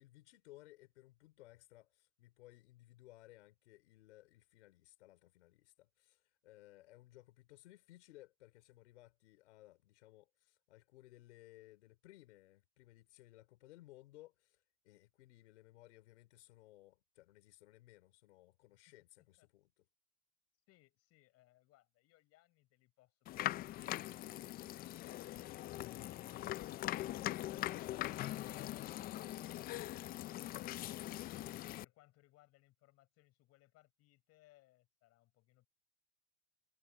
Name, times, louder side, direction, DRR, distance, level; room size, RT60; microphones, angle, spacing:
voice 1, 0.0-19.8 23.6-24.1 27.4-28.1, left 17 dB, 80° left, 3.8 m, -61 dB
voice 2, 20.7-24.3 24.6-35.7, left 17 dB, 45° left, 7.1 m, -69 dB
sound 1, 23.3-31.9, left 14 dB, 30° left, 0.4 m, -42 dB
supercardioid pair, 130°, 34 cm